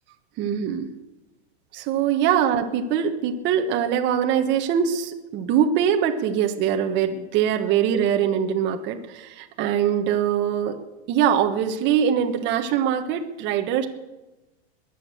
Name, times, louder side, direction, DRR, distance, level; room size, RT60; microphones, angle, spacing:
voice 1, 0.4-0.9 1.7-10.8 11.1-13.9, right 9 dB, 35° right, 5 dB, 1.4 m, -23 dB
22.0 x 8.5 x 6.7 m, 1.1 s
supercardioid pair, 150°, 32 cm